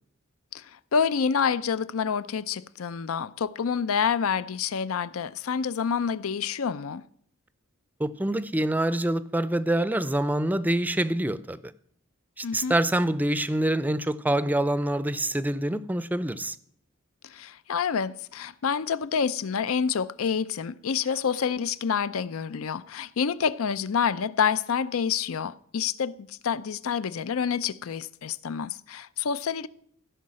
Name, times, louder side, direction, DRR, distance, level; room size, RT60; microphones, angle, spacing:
voice 1, 0.5-7.0 12.4-12.8 17.2-29.7, left 6 dB, 85° left, 0.5 m, -28 dB
voice 2, 8.0-11.7 12.4-16.6, right 1 dB, 10° right, 0.4 m, -26 dB
15.5 x 5.6 x 7.5 m
head